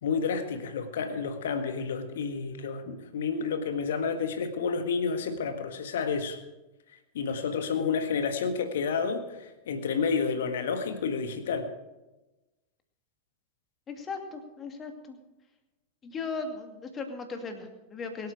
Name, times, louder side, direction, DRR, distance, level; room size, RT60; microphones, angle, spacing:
voice 1, 0.0-6.4 7.1-11.7, left 5 dB, 60° left, 8 dB, 1.6 m, -30 dB
voice 2, 13.9-15.2 16.0-18.3, left 4 dB, 25° left, 5 dB, 2.4 m, -37 dB
23.0 x 8.4 x 4.9 m, 1.1 s
figure-of-eight pair, 90°, 0 cm